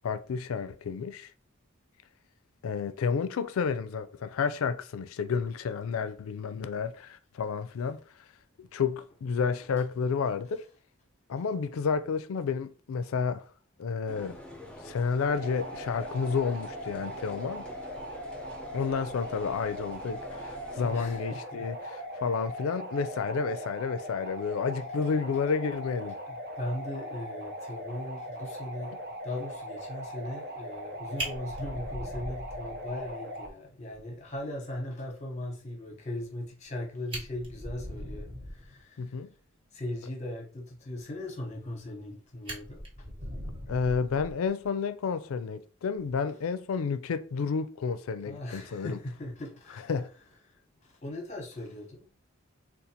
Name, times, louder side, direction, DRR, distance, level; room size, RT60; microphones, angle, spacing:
voice 1, 0.0-1.3 2.6-8.0 8.6-10.7 11.3-13.5 13.8-14.4 14.8-17.6 18.7-26.2 39.0-39.3 43.7-49.0 49.9-50.1, left 5 dB, 85° left, 0.4 m, -31 dB
sound 1, 14.1-21.2, left 1 dB, 5° left, 0.7 m, -47 dB
sound 2, 15.3-33.5, equal, 50° right, 0.6 m, -40 dB
voice 2, 20.7-21.7 26.3-29.0 29.2-39.2 39.7-42.8 48.2-49.9 50.5-52.1, left 1 dB, 35° left, 0.9 m, -39 dB
Fire, 31.2-33.1 33.5-33.6 33.9-34.0 34.4-34.5 36.6-36.7 37.0-38.7 41.6-42.1 42.5-44.7 46.0-46.2, equal, 25° right, 1.0 m, -40 dB
3.8 x 2.3 x 2.8 m
head